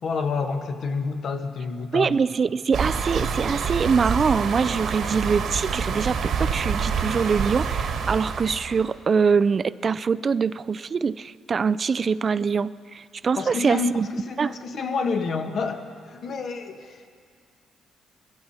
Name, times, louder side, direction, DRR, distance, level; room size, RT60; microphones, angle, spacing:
voice 1, 0.0-2.1 13.4-17.0, left 4 dB, 60° left, 5 dB, 1.4 m, -28 dB
voice 2, 1.9-14.1 14.4-14.5, right 5 dB, 40° right, 16 dB, 0.3 m, -24 dB
sound 1, 2.7-8.9, right 6 dB, 70° right, 1.5 m, -27 dB
21.5 x 15.5 x 4.3 m, 2.1 s
cardioid pair, 90°, 0 cm